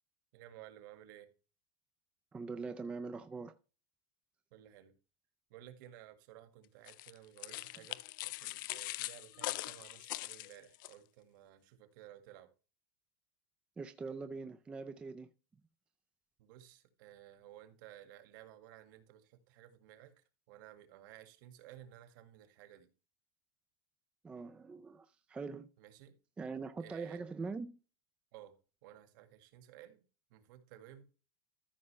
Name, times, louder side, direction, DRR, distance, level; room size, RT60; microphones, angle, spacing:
voice 1, 0.3-1.3 4.5-4.9 5.5-12.5 16.4-22.9 25.8-26.1 26.8-27.2 28.3-28.5 28.8-30.0 30.3-31.0, right 12 dB, 55° right, 1.9 m, -56 dB
voice 2, 2.3-3.6 13.8-15.3 24.2-25.7 26.4-27.8, right 4 dB, 10° right, 0.4 m, -43 dB
sound 1, 6.9-10.9, left 19 dB, 55° left, 0.4 m, -42 dB
14.0 x 6.3 x 3.2 m
supercardioid pair, 175°, 13 cm